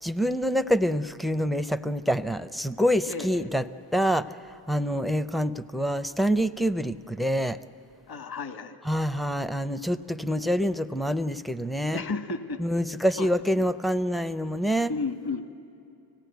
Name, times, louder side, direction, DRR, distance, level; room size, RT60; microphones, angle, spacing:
voice 1, 0.0-3.6 3.9-4.4 4.7-7.6 8.9-12.0 12.6-14.9, equal, ahead, 14 dB, 0.5 m, -26 dB
voice 2, 3.1-3.5 8.1-8.8 11.9-12.6 13.2-13.3 13.5-13.7 14.9-15.4, left 4 dB, 50° left, 8 dB, 1.4 m, -33 dB
25.0 x 17.5 x 9.2 m, 2.8 s
cardioid pair, 75°, 49 cm